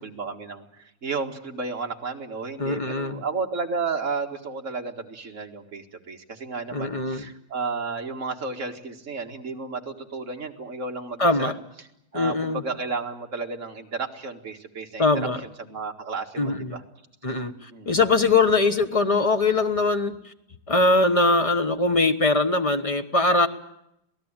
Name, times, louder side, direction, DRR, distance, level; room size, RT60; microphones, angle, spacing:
voice 1, 0.0-11.5 12.1-15.1 15.6-16.8 17.7-18.0, right 4 dB, 35° right, 2 dB, 2.1 m, -32 dB
voice 2, 2.6-3.2 6.7-7.3 11.2-11.5 12.1-12.6 15.0-15.4 16.4-16.8 17.2-20.3 20.7-23.5, left 3 dB, 30° left, 7 dB, 0.6 m, -22 dB
27.0 x 18.0 x 8.9 m, 0.82 s
omnidirectional pair, 2.3 m